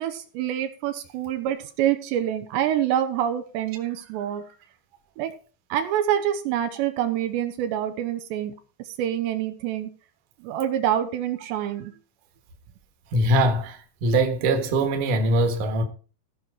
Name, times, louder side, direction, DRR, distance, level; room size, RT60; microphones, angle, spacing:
voice 1, 0.0-4.4 5.2-5.3 5.7-8.5 8.8-9.9 10.4-11.9, right 10 dB, 80° right, 3.1 m, -26 dB
voice 2, 13.1-15.8, right 1 dB, 60° right, 2.5 m, -22 dB
15.5 x 5.7 x 4.8 m
omnidirectional pair, 5.1 m